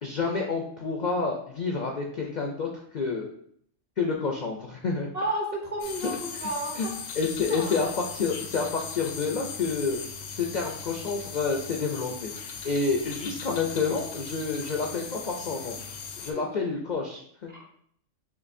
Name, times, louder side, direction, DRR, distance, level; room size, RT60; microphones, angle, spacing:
voice 1, 0.0-3.3 4.0-5.1 6.7-6.9 7.1-10.0 10.3-15.8 16.2-17.6, left 4 dB, 55° left, 0 dB, 0.5 m, -29 dB
voice 2, 5.1-6.1 6.4-6.9 7.5-7.8 16.3-16.5 17.5-17.6, right 1 dB, 35° right, -1 dB, 0.9 m, -32 dB
sound 1, 5.8-16.3, left 6 dB, 85° left, 1.0 m, -39 dB
6.7 x 2.6 x 2.6 m, 0.67 s
omnidirectional pair, 1.3 m